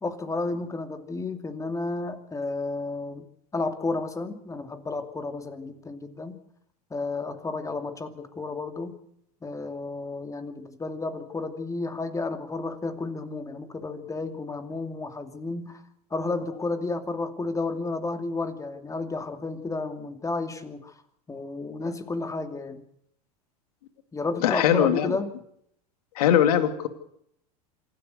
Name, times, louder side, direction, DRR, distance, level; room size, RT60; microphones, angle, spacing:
voice 1, 0.0-3.3 3.5-6.4 6.9-9.0 9.4-15.8 16.1-20.9 21.3-22.8 24.1-25.3, left 3 dB, 15° left, 8 dB, 2.6 m, -32 dB
voice 2, 24.4-25.2 26.2-26.9, left 10 dB, 75° left, 9 dB, 2.5 m, -21 dB
27.0 x 12.5 x 8.0 m, 0.71 s
hypercardioid pair, 95°, 20 cm